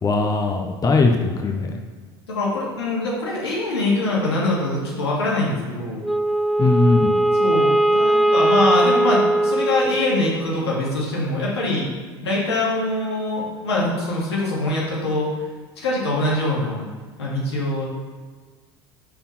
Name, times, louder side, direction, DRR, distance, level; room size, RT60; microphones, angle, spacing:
voice 1, 0.0-1.7 6.6-7.1, left 3 dB, 25° left, 3 dB, 0.9 m, -19 dB
voice 2, 2.3-6.0 7.3-11.9 12.2-15.3 15.8-16.9 17.2-17.9, left 2 dB, 90° left, -5 dB, 2.1 m, -23 dB
Wind instrument woodwind instrument, 6.0-10.5, right 1 dB, ahead, 0.4 m, -19 dB
5.6 x 4.3 x 5.7 m, 1.5 s
hypercardioid pair, 80°, 13 cm